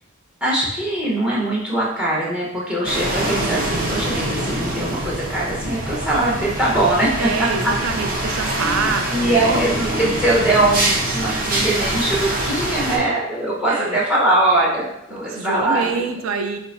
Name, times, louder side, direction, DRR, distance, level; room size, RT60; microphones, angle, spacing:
voice 1, 0.4-7.7 8.6-16.1, right 1 dB, 5° right, -4 dB, 0.9 m, -21 dB
sound 1, 2.8-13.0, right 1 dB, 40° right, 0.7 m, -24 dB
voice 2, 7.2-9.6 13.7-14.0 15.1-16.6, right 4 dB, 80° right, 5 dB, 0.4 m, -26 dB
4.7 x 3.2 x 2.6 m, 0.79 s
head